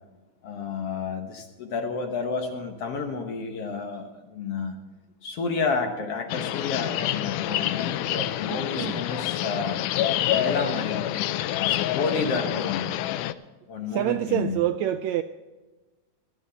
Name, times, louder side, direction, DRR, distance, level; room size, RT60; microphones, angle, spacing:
voice 1, 0.4-4.8 5.2-9.8 10.3-11.1 11.6-12.9 13.7-14.6, left 4 dB, 60° left, 1.9 m, -30 dB
sound 1, 6.3-13.3, left 12 dB, 85° left, 2.1 m, -27 dB
voice 2, 8.4-9.0 13.9-15.2, right 12 dB, 80° right, 1.6 m, -27 dB
16.5 x 12.0 x 4.0 m
omnidirectional pair, 3.6 m